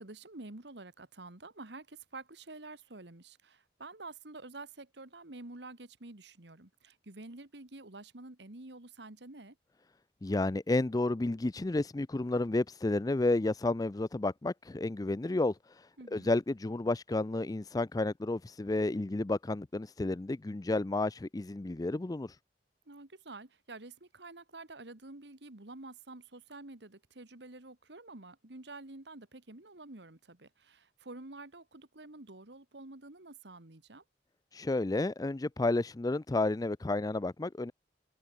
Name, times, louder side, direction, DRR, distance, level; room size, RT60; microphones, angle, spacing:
voice 1, 0.0-9.6 16.0-16.3 22.9-34.0, right 2 dB, 70° right, 1.9 m, -49 dB
voice 2, 10.2-22.4 34.5-37.7, left 2 dB, 20° left, 0.4 m, -31 dB
head